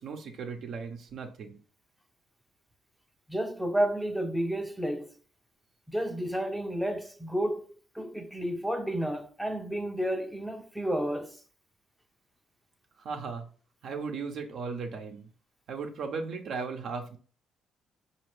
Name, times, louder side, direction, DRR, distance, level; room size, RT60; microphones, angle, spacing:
voice 1, 0.0-1.6 13.0-13.5 13.8-15.3 15.7-17.2, right 5 dB, 65° right, 0.7 m, -36 dB
voice 2, 3.3-5.1 5.9-7.7 7.9-11.4, right 1 dB, ahead, 0.6 m, -31 dB
4.2 x 2.7 x 3.2 m
supercardioid pair, 75°, 0 cm